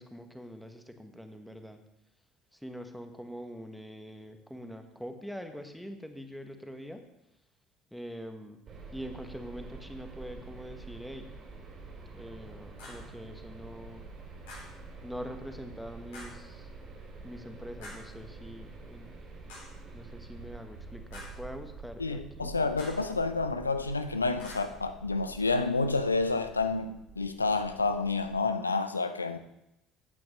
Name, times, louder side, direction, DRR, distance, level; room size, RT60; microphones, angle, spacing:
voice 1, 0.0-1.8 2.6-7.0 7.9-8.6 8.9-11.3 12.1-14.0 15.0-16.7 17.2-19.1 19.9-22.5, equal, ahead, 6 dB, 1.3 m, -44 dB
sound 1, 8.7-28.5, right 4 dB, 40° right, 2.9 m, -47 dB
sound 2, 12.8-13.1 14.5-14.8 16.1-16.5 17.8-18.2 19.5-19.8 21.1-21.5 22.8-23.1 24.4-24.7, left 2 dB, 70° left, 3.6 m, -47 dB
voice 2, 22.0-29.4, left 3 dB, 90° left, 10 dB, 0.5 m, -29 dB
13.5 x 8.5 x 3.2 m, 0.86 s
figure-of-eight pair, 60°, 0 cm